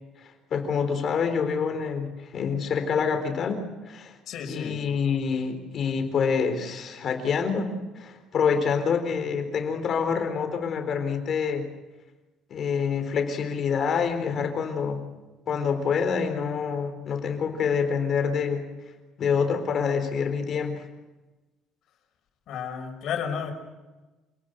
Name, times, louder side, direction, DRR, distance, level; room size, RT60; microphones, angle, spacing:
voice 1, 0.5-4.2 4.5-11.7 12.5-15.0 15.5-18.6 19.2-20.8, left 6 dB, 40° left, 6 dB, 4.0 m, -26 dB
voice 2, 4.3-4.8 22.5-23.5, left 7 dB, 55° left, 3 dB, 5.5 m, -32 dB
28.0 x 18.5 x 8.2 m, 1.1 s
cardioid pair, 160°, 0 cm